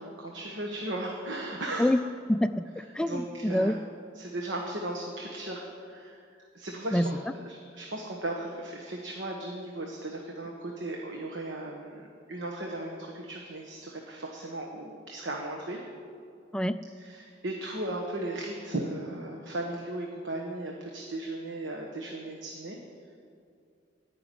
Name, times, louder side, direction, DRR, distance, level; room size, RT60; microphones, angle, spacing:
voice 1, 0.0-1.9 3.1-3.8 4.1-15.8 17.0-22.8, right 1 dB, 75° right, 0 dB, 1.3 m, -36 dB
voice 2, 2.3-3.8 6.9-7.1 16.5-16.8, left 1 dB, 5° left, 12 dB, 0.3 m, -26 dB
14.5 x 5.9 x 9.7 m, 2.4 s
head